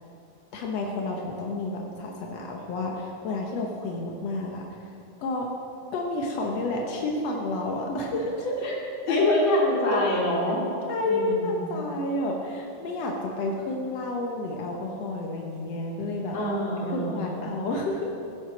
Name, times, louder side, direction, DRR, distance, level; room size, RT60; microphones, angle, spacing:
voice 1, 0.5-4.9 5.2-5.5 5.9-8.7 9.1-9.3 9.9-10.0 10.9-16.4 16.9-18.1, left 2 dB, 80° left, 0 dB, 1.4 m, -30 dB
voice 2, 9.1-10.7 11.1-11.8 16.3-17.5, left 1 dB, 35° left, -4 dB, 2.6 m, -25 dB
15.0 x 10.0 x 5.1 m, 2.6 s
omnidirectional pair, 4.5 m